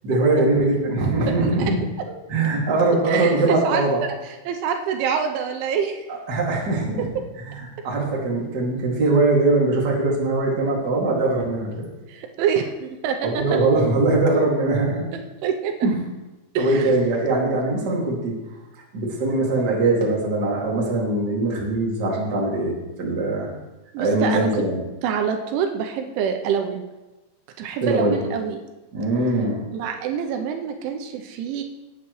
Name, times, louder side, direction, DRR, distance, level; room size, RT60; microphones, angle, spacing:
voice 1, 0.0-1.8 2.0-4.0 6.1-7.1 7.4-11.9 13.2-15.1 15.8-16.0 16.6-18.4 18.9-23.5 24.0-24.8 27.8-28.2 28.9-29.6, right 2 dB, 30° right, -3 dB, 2.0 m, -21 dB
voice 2, 3.1-3.8 4.5-6.0 12.1-13.4 15.1-15.7 16.5-16.9 23.9-24.5 25.0-26.8 27.6-28.6 29.7-31.6, right 7 dB, 85° right, 4 dB, 3.3 m, -26 dB
17.0 x 9.4 x 3.2 m, 1.1 s
omnidirectional pair, 5.4 m